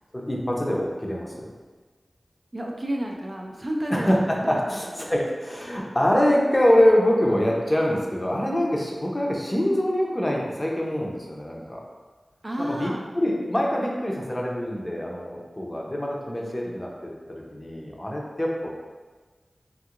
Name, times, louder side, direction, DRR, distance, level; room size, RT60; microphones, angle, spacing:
voice 1, 0.1-1.5 3.9-11.8 12.7-16.9 17.5-18.5, equal, 20° left, -2 dB, 0.6 m, -24 dB
voice 2, 2.5-5.1 8.7-8.9 12.4-13.0 16.6-16.9, right 1 dB, 35° right, 0 dB, 0.3 m, -32 dB
3.3 x 2.9 x 2.4 m, 1.4 s
wide cardioid pair, 70°, 0 cm